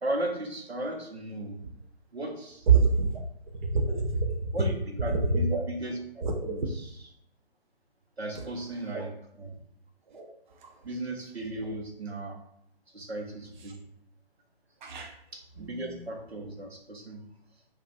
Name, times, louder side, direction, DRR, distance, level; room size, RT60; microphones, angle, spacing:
voice 1, 0.0-1.6 2.1-2.7 4.5-7.1 8.2-9.6 10.8-12.4 12.9-13.8 15.3-17.2, right 1 dB, 90° right, 1 dB, 0.8 m, -36 dB
voice 2, 2.7-3.2 3.6-4.5 5.3-5.6 6.2-6.7 8.9-9.0 10.1-10.3 14.8-15.1 15.6-16.0, right 5 dB, 50° right, 2 dB, 0.4 m, -26 dB
2.4 x 2.2 x 4.0 m, 0.72 s
figure-of-eight pair, 140°, 31 cm